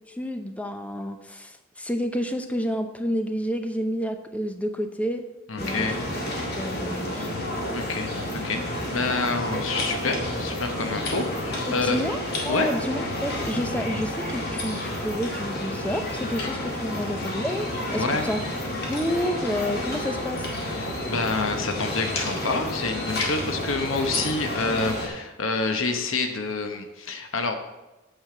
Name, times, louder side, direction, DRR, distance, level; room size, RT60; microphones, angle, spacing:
voice 1, 0.1-5.2 5.6-5.9 6.6-7.3 11.7-12.2 12.4-18.4 18.9-20.5, equal, 5° left, 7 dB, 0.7 m, -29 dB
voice 2, 5.5-6.0 7.7-12.0 12.5-12.7 16.4-16.5 17.9-18.2 20.8-27.5, left 3 dB, 70° left, 6 dB, 1.0 m, -28 dB
sound 1, 5.6-25.1, left 1 dB, 50° left, 2.1 m, -30 dB
9.0 x 5.6 x 6.6 m, 1.0 s
head